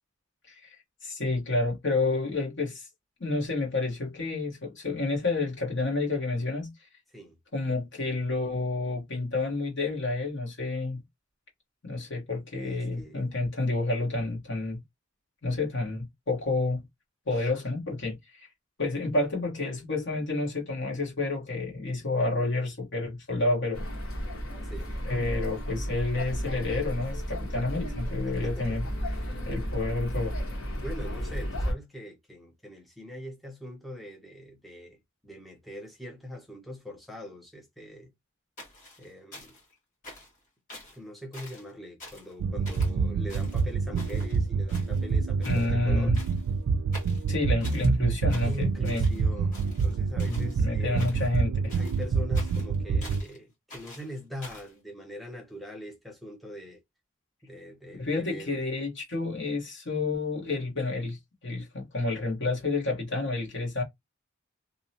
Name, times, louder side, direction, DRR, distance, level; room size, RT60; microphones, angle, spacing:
voice 1, 1.0-2.9 3.2-6.7 7.5-11.0 11.8-14.8 15.4-16.8 17.3-18.5 18.8-23.8 25.0-28.8 29.5-30.4 45.4-46.2 47.3-49.0 50.2-51.7 58.0-63.8, left 2 dB, 60° left, 1.2 m, -29 dB
voice 2, 12.5-13.3 24.6-25.0 28.3-29.5 30.8-35.0 35.2-38.1 39.0-39.6 40.9-46.1 48.4-51.0 51.7-56.8 57.4-58.7, left 1 dB, ahead, 0.5 m, -42 dB
sound 1, 23.7-31.7, equal, 80° left, 1.1 m, -33 dB
sound 2, 38.6-39.7 40.0-40.4 40.7-41.0 41.3-41.7 42.0-42.3 42.7-42.9 43.3-44.4 44.7-45.2 45.4-45.7 46.1-46.5 46.9-47.9 48.3-49.2 49.5-50.6 51.0-51.4 51.7-53.4 53.7-54.7, left 1 dB, 40° left, 1.5 m, -47 dB
sound 3, 42.4-53.2, right 5 dB, 70° right, 0.3 m, -27 dB
2.8 x 2.0 x 2.7 m
head